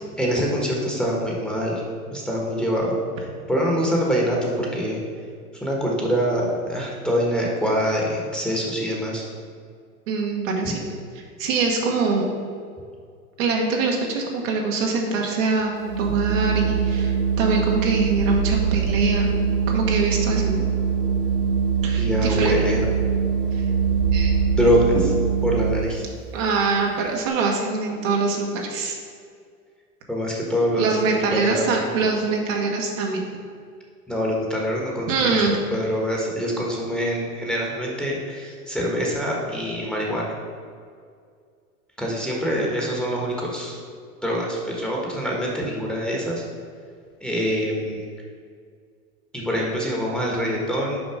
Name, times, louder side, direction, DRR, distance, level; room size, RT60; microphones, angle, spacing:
voice 1, 0.2-1.8 2.1-3.0 3.5-5.0 5.6-9.2 10.6-10.7 22.0-22.8 24.6-25.1 25.4-26.0 30.1-31.0 31.3-31.9 34.1-35.4 35.7-40.3 42.0-43.8 44.2-46.5 47.2-48.1 49.3-51.0, equal, ahead, -3 dB, 1.3 m, -24 dB
voice 2, 10.1-10.8 11.4-12.4 13.4-15.7 16.0-19.3 19.7-20.7 21.8-22.6 23.5-23.6 24.1-24.3 26.3-29.0 30.8-33.2 35.1-35.5, right 4 dB, 60° right, 0 dB, 1.4 m, -24 dB
Organ, 15.8-26.1, right 7 dB, 85° right, 1.0 m, -22 dB
6.0 x 5.1 x 5.0 m, 2.1 s
hypercardioid pair, 95°, 45 cm